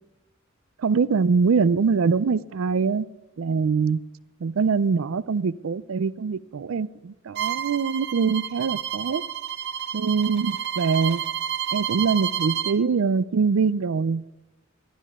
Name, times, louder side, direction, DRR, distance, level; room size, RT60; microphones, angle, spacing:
voice 1, 0.8-3.1 3.4-4.0 4.4-9.2 9.9-11.2 11.7-14.2, right 5 dB, 80° right, 0.4 m, -23 dB
Bowed string instrument, 7.3-12.8, right 10 dB, 60° right, 0.8 m, -30 dB
12.5 x 12.5 x 3.6 m
head